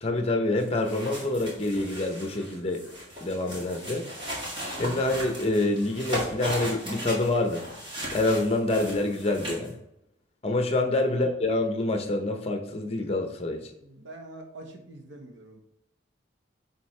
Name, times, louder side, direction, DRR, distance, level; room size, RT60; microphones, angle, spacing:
voice 1, 0.0-2.8 3.2-4.1 4.8-7.6 8.1-9.8 10.4-13.7, left 2 dB, 30° left, 5 dB, 0.8 m, -26 dB
sound 1, 0.6-9.7, equal, 25° right, 2.0 m, -37 dB
voice 2, 13.8-15.6, right 2 dB, 80° right, 3 dB, 1.3 m, -45 dB
9.2 x 3.6 x 3.3 m, 0.81 s
head